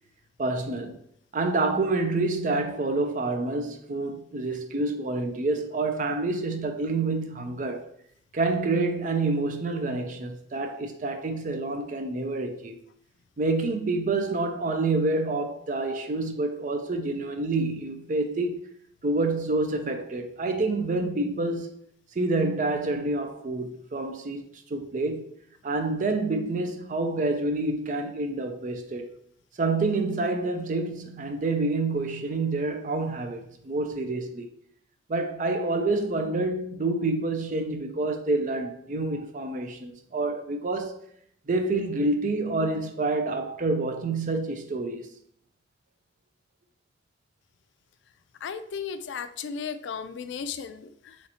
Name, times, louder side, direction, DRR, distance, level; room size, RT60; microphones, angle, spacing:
voice 1, 0.4-1.0 1.3-7.9 8.3-12.8 13.4-18.6 19.0-21.8 22.1-25.3 25.6-29.1 29.6-34.5 35.1-41.0 41.5-45.1, right 2 dB, 45° right, 0.4 m, -28 dB
voice 2, 48.4-51.2, left 6 dB, 90° left, 0.3 m, -35 dB
4.0 x 3.2 x 2.8 m
head